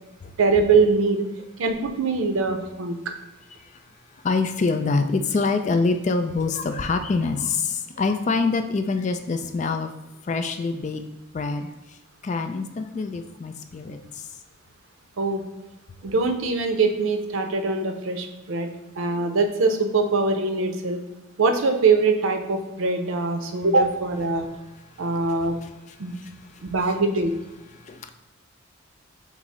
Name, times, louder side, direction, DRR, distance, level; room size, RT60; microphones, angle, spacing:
voice 1, 0.4-1.3 1.6-3.0 15.2-15.4 16.0-18.7 19.0-21.0 21.4-24.5 25.0-25.6 26.0-26.1 26.6-27.3, right 3 dB, 85° right, 6 dB, 0.6 m, -22 dB
voice 2, 4.2-9.9 10.2-11.0 11.3-11.7 12.2-14.3 16.0-16.1 25.6-25.7 26.1-26.6 27.8-28.1, left 4 dB, 35° left, 8 dB, 0.3 m, -25 dB
6.0 x 2.0 x 4.2 m, 1.1 s
head